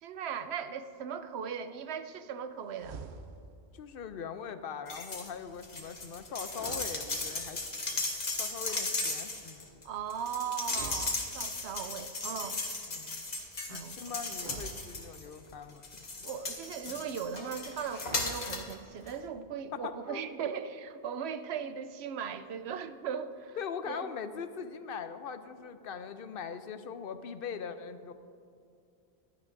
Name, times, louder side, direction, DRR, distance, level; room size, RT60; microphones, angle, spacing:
voice 1, 0.0-3.0 9.8-12.6 13.7-13.9 16.2-23.6 23.9-24.1, right 7 dB, 90° right, 11 dB, 0.9 m, -38 dB
sound 1, 2.7-3.7 6.4-7.7 10.6-11.8 14.3-15.6 17.9-18.9, right 5 dB, 55° right, 0.7 m, -47 dB
voice 2, 3.7-7.6 7.9-8.0 8.4-9.6 12.9-13.3 13.7-15.8 19.7-20.2 23.6-28.1, left 6 dB, 65° left, 10 dB, 0.7 m, -41 dB
sound 2, 4.9-5.3 5.6-15.4 15.8-18.7 19.1-19.2, left 3 dB, 45° left, 1.2 m, -36 dB
15.0 x 11.5 x 2.6 m, 2.4 s
omnidirectional pair, 1.1 m